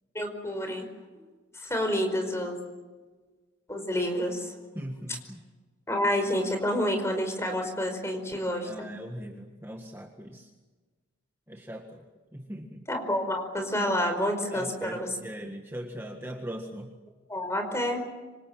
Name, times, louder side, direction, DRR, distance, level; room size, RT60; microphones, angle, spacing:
voice 1, 0.1-0.9 1.5-2.6 3.7-4.5 5.9-8.7 12.9-15.1 17.3-18.0, left 1 dB, 15° left, 6 dB, 5.0 m, -28 dB
voice 2, 4.7-5.4 8.6-10.5 11.5-12.0 12.3-12.8 14.5-17.0, equal, 10° right, 2 dB, 1.6 m, -40 dB
26.5 x 26.0 x 7.5 m, 1.3 s
head